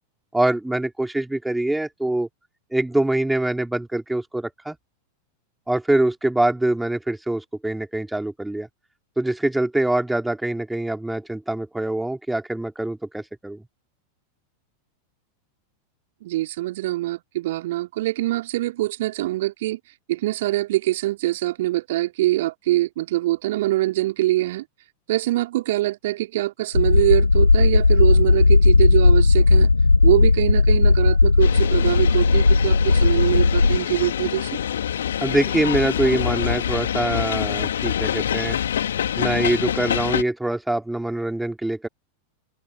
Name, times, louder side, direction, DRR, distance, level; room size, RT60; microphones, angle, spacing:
voice 1, 0.3-2.3 2.7-4.8 5.7-8.7 9.2-13.6 35.2-38.6 39.2-41.9, right 1 dB, 5° right, 3.6 m, -24 dB
voice 2, 16.2-19.8 20.1-24.6 25.1-29.7 30.0-34.6, right 16 dB, 55° right, 4.2 m, -23 dB
sound 1, 26.7-33.8, left 3 dB, 80° left, 7.5 m, -16 dB
sound 2, 31.4-40.2, left 9 dB, 65° left, 2.5 m, -26 dB
open air
figure-of-eight pair, 90°, 0 cm